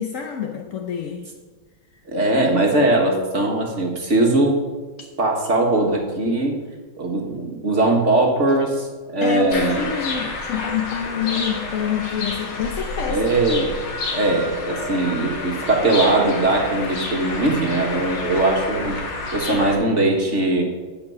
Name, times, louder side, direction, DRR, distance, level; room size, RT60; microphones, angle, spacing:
voice 1, 0.0-1.3 5.0-5.1 9.2-13.2 14.0-14.3 14.7-14.8, left 8 dB, 60° left, 3 dB, 0.8 m, -27 dB
voice 2, 2.1-4.6 5.2-6.6 7.0-8.9 9.1-9.9 13.1-13.8 14.1-20.6, right 2 dB, 40° right, 1 dB, 1.7 m, -20 dB
sound 1, 9.5-19.7, left 3 dB, 90° left, 2.9 m, -29 dB
15.5 x 5.3 x 6.8 m, 1.4 s
omnidirectional pair, 2.2 m